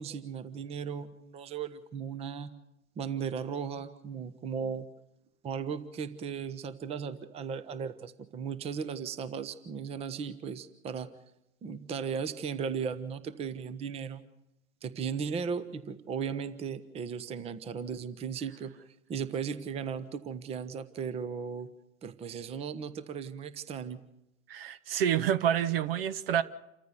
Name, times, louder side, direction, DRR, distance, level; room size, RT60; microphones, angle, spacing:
voice 1, 0.0-2.5 3.0-4.9 5.4-11.1 11.6-14.2 14.8-18.7 19.1-21.7 22.0-24.0, right 6 dB, 15° right, 13 dB, 0.9 m, -36 dB
voice 2, 24.5-26.4, right 9 dB, 45° right, 15 dB, 1.0 m, -28 dB
28.5 x 14.0 x 6.9 m, 0.89 s
figure-of-eight pair, 105°, 41 cm